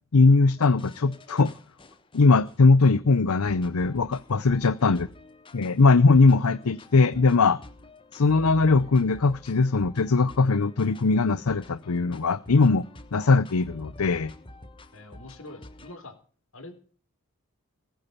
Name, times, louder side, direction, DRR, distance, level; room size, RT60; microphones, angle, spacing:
voice 1, 0.1-1.5 2.1-5.1 5.5-7.6 8.1-12.8 13.1-14.3, left 3 dB, 85° left, 0.7 m, -20 dB
sound 1, 0.6-2.9 3.5-15.9, left 1 dB, 20° left, 1.3 m, -48 dB
voice 2, 14.9-16.1 16.5-16.7, left 2 dB, 70° left, 3.7 m, -44 dB
19.0 x 10.5 x 5.6 m
head